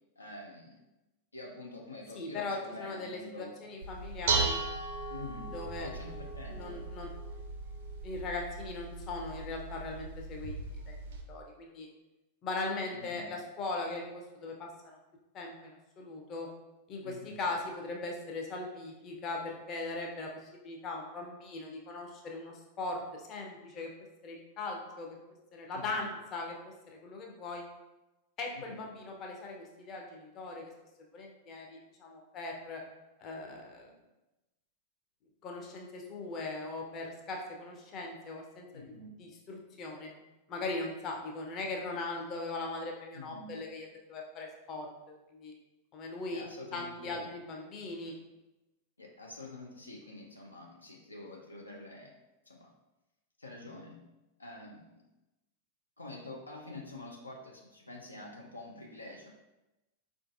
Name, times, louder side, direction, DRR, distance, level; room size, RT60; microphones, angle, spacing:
voice 1, 0.2-0.8 1.3-3.5 5.1-6.8 12.9-13.3 17.0-17.4 25.7-26.1 28.5-28.9 38.7-39.1 43.1-43.6 46.3-47.3 49.0-52.1 52.5-52.7 53.4-54.0 54.4-55.0 56.0-59.3, left 2 dB, 80° left, -1 dB, 0.4 m, -47 dB
voice 2, 2.1-4.6 5.5-5.9 6.5-7.1 8.0-10.9 11.3-11.9 12.4-15.0 15.3-16.5 16.9-23.9 24.2-25.2 25.5-27.6 28.4-30.7 31.1-32.8 33.2-33.9 35.4-38.8 39.2-40.1 40.5-45.5 45.9-46.4 46.7-48.1, left 3 dB, 35° left, 0 dB, 0.6 m, -39 dB
Dishes pots and pans, 3.8-11.2, right 4 dB, 55° right, 0.5 m, -37 dB
4.5 x 2.5 x 2.4 m, 1.0 s
figure-of-eight pair, 90°, 0 cm